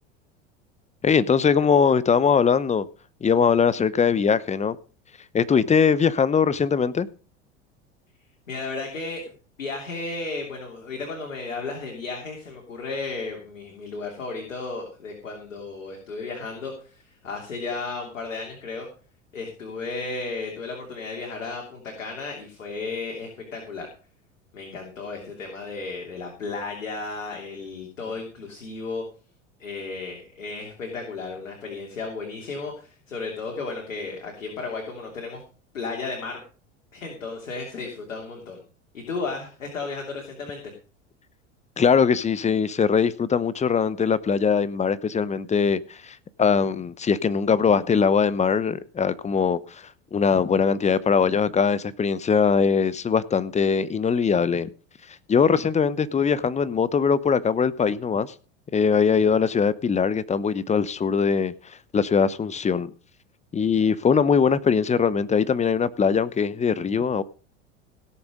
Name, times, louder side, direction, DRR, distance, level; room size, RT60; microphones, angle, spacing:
voice 1, 1.0-2.8 3.2-4.8 5.3-7.1 41.8-49.8 50.1-54.7 55.3-58.3 58.7-61.5 61.9-62.9 63.5-67.2, left 6 dB, 20° left, 0.8 m, -21 dB
voice 2, 8.5-9.3 9.6-18.9 19.3-23.9 24.5-29.0 29.6-35.4 35.7-36.4 36.9-38.6 38.9-40.6, left 3 dB, 85° left, 3.1 m, -34 dB
17.0 x 7.1 x 5.2 m
hypercardioid pair, 80°, 38 cm